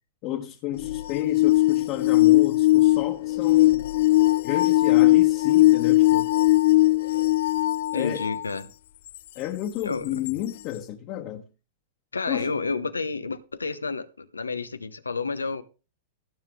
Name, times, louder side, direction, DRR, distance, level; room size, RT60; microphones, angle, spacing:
voice 1, 0.2-3.9 4.4-6.3 7.9-8.3 9.3-11.4 12.3-12.5, left 12 dB, 45° left, 1.5 m, -32 dB
sound 1, 0.8-8.4 9.1-9.2 10.3-10.4, left 17 dB, 60° left, 0.4 m, -19 dB
voice 2, 7.9-8.7 9.8-10.4 12.1-15.6, left 4 dB, 90° left, 1.0 m, -30 dB
16.0 x 7.4 x 3.6 m
hypercardioid pair, 100°, 0 cm